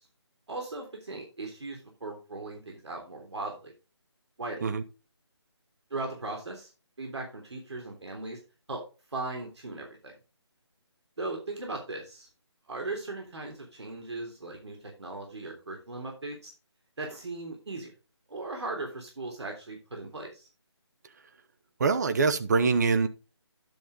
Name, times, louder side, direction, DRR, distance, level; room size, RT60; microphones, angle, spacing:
voice 1, 0.5-3.7 4.4-4.7 5.9-6.7 7.0-8.4 8.7-8.8 9.1-10.1 11.2-12.3 12.7-16.5 17.0-17.9 18.3-20.5, right 2 dB, 70° right, 2 dB, 3.3 m, -38 dB
voice 2, 21.8-23.1, right 4 dB, 35° right, 10 dB, 1.0 m, -24 dB
10.5 x 7.0 x 3.8 m, 0.32 s
figure-of-eight pair, 160°, 15 cm